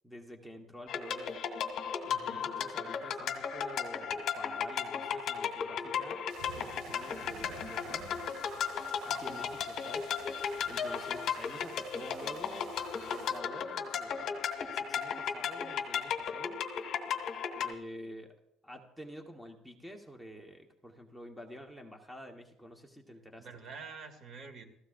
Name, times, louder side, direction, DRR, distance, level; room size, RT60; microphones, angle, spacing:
voice 1, 0.0-1.3 2.2-6.2 6.5-8.1 9.0-10.1 10.7-12.7 13.0-16.6 17.6-18.3 18.6-23.5, equal, ahead, 2 dB, 1.3 m, -48 dB
sound 1, 0.9-17.7, left 7 dB, 55° left, 1.8 m, -35 dB
voice 2, 2.0-2.5 23.4-24.6, right 5 dB, 45° right, 6 dB, 2.4 m, -47 dB
sound 2, 6.3-13.4, right 7 dB, 85° right, 1.9 m, -51 dB
30.0 x 16.0 x 2.6 m, 0.86 s
cardioid pair, 145°, 0 cm